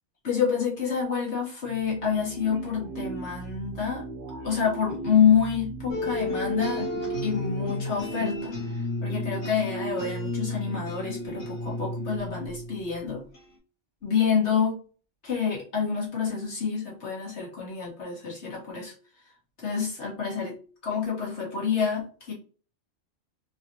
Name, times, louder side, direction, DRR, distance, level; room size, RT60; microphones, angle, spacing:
voice 1, 0.2-4.1 4.4-6.9 7.2-13.2 14.0-14.8 15.2-18.9 19.6-20.6 20.8-22.3, left 7 dB, 70° left, -4 dB, 1.9 m, -27 dB
sound 1, 1.6-8.8, right 3 dB, 65° right, 1.1 m, -40 dB
sound 2, 5.9-13.5, left 1 dB, 85° left, 1.6 m, -32 dB
4.1 x 2.9 x 2.7 m, 0.39 s
omnidirectional pair, 1.2 m